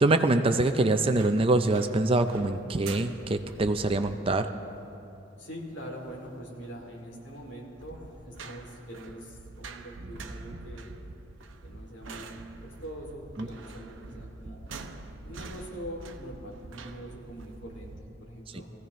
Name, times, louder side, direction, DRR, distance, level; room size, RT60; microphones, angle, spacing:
voice 1, 0.0-4.5, right 2 dB, 30° right, 8 dB, 0.4 m, -24 dB
sound 1, 1.0-18.0, right 3 dB, 85° right, 0.8 m, -46 dB
voice 2, 5.4-10.9 11.6-14.6 15.2-18.7, equal, 65° left, -1 dB, 2.6 m, -43 dB
21.0 x 15.5 x 3.1 m, 2.8 s
head